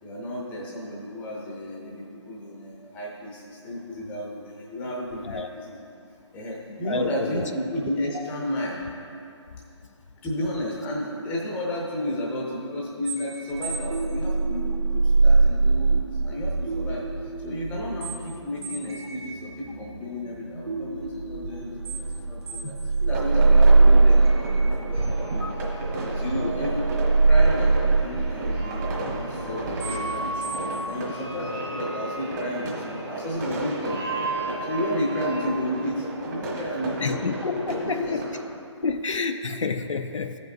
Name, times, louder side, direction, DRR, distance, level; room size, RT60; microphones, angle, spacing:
voice 1, 0.0-5.8 6.3-8.8 10.2-25.5 26.0-26.9 27.2-34.0 34.6-37.3 37.6-38.2, equal, 10° left, -3 dB, 0.7 m, -32 dB
sound 1, 13.1-31.4, right 3 dB, 55° right, 1.5 m, -23 dB
sound 2, 23.1-38.5, right 1 dB, 35° right, 1.5 m, -34 dB
sound 3, 24.9-35.4, right 2 dB, 5° right, 0.3 m, -36 dB
voice 2, 37.0-38.2 38.8-40.4, left 4 dB, 80° left, 7 dB, 0.5 m, -28 dB
15.5 x 5.3 x 2.6 m, 2.6 s
figure-of-eight pair, 150°, 16 cm